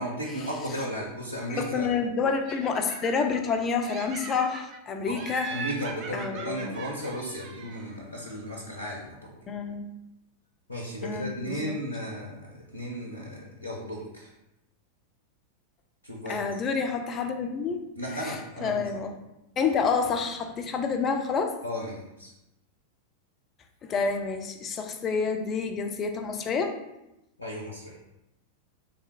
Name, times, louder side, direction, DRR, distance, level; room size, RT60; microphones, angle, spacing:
voice 1, 0.0-1.9 5.0-5.2 5.5-9.3 10.7-14.3 16.0-16.4 18.0-18.8 21.6-22.3 27.4-28.0, equal, 85° left, -2 dB, 0.5 m, -35 dB
voice 2, 1.5-5.6 6.1-6.9 9.5-9.9 11.0-11.8 16.3-17.8 18.1-19.1 19.6-21.6 23.8-26.8, left 5 dB, 30° left, 5 dB, 0.4 m, -29 dB
Laughter, 2.5-3.6 3.9-4.8 5.2-7.9, right 4 dB, 35° right, 0.4 m, -40 dB
3.3 x 2.4 x 2.8 m, 0.90 s
figure-of-eight pair, 90°, 0 cm